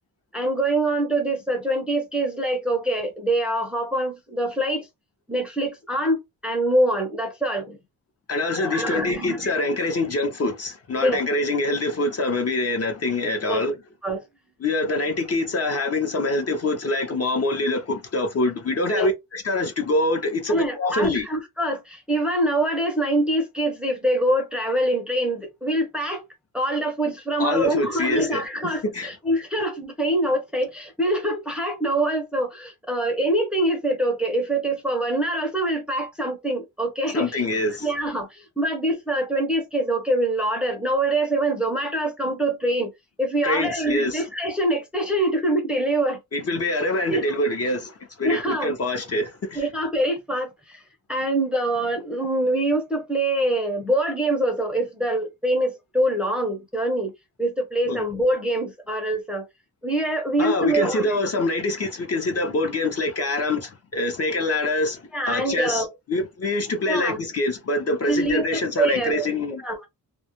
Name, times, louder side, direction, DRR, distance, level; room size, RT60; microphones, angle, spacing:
voice 1, 0.3-4.9 5.3-7.8 8.5-9.5 11.0-11.2 13.5-13.6 14.0-14.2 18.9-19.1 20.5-26.2 26.5-37.4 37.8-42.9 43.2-46.2 47.1-47.2 48.2-48.7 49.5-50.8 51.1-57.1 57.4-59.5 59.8-61.2 65.1-65.9 66.9-67.2 68.1-69.3 69.6-69.9, right 1 dB, 5° right, 0.6 m, -24 dB
voice 2, 8.3-13.7 14.6-21.3 27.4-29.1 37.1-37.9 43.4-44.2 46.3-49.7 57.9-58.0 60.4-69.6, left 2 dB, 40° left, 0.7 m, -25 dB
2.3 x 2.0 x 2.9 m
cardioid pair, 115°, 37 cm